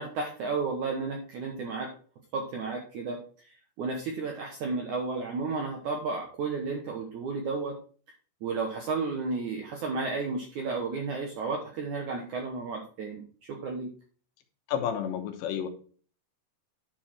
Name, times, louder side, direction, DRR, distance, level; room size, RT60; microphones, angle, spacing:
voice 1, 0.0-1.9 2.3-3.2 3.8-7.8 8.4-13.2 13.5-13.9, right 4 dB, 70° right, 1 dB, 1.9 m, -32 dB
voice 2, 14.7-15.7, left 9 dB, 80° left, 6 dB, 3.3 m, -30 dB
10.5 x 4.7 x 4.4 m, 0.41 s
omnidirectional pair, 5.0 m